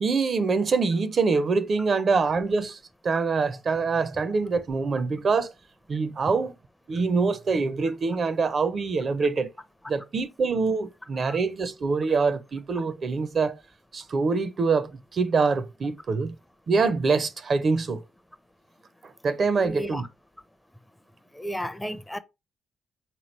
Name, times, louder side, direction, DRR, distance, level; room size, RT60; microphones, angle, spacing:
voice 1, 0.0-2.8 3.0-5.5 5.9-6.5 6.9-9.5 9.9-13.5 13.9-16.4 16.7-18.0 19.2-20.0, right 4 dB, 55° right, 0.4 m, -25 dB
voice 2, 19.6-20.0 21.3-22.2, equal, 10° left, 0.5 m, -33 dB
3.6 x 3.0 x 3.0 m
hypercardioid pair, 45°, 0 cm